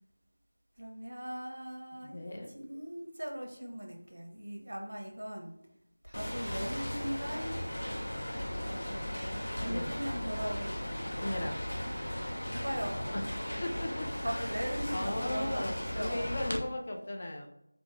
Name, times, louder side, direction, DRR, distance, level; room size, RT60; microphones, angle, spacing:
voice 1, 0.8-5.6 6.0-7.5 8.6-11.0 12.5-13.3 14.2-16.4, equal, 80° right, 2 dB, 0.7 m, -39 dB
voice 2, 2.0-2.5 9.6-9.9 11.2-11.6 13.1-13.2 13.6-14.5 14.9-17.5, left 1 dB, 30° left, 2 dB, 0.3 m, -37 dB
sound 1, 6.1-16.6, equal, 85° left, 0.6 m, -36 dB
2.6 x 2.5 x 3.0 m, 0.83 s
figure-of-eight pair, 175°, 0 cm